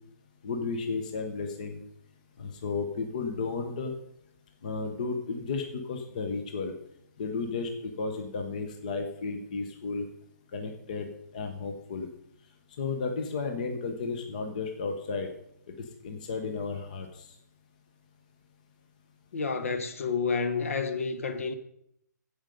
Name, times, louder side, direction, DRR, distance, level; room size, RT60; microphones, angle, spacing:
voice 1, 0.4-1.8 2.4-3.9 4.6-6.7 7.2-10.1 10.5-11.1 11.3-12.1 12.8-15.3 15.7-15.8 16.0-17.3, left 4 dB, 25° left, 0.9 m, -33 dB
voice 2, 19.3-21.5, left 5 dB, 45° left, 1.0 m, -29 dB
15.0 x 5.1 x 5.3 m
hypercardioid pair, 180°, 10 cm